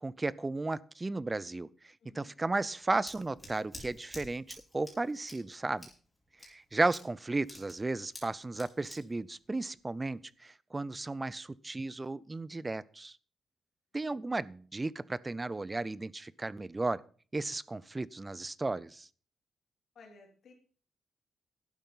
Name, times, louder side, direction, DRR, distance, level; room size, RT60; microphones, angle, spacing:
voice 1, 0.0-1.7 2.2-5.9 6.4-13.1 13.9-17.0 17.3-19.1, right 2 dB, 20° right, 20 dB, 0.5 m, -34 dB
Scissors, 2.5-10.3, left 1 dB, 10° left, 5.0 m, -52 dB
voice 2, 19.9-20.5, left 3 dB, 60° left, 3 dB, 3.6 m, -56 dB
12.0 x 9.1 x 5.7 m, 0.43 s
wide cardioid pair, 135°, 0 cm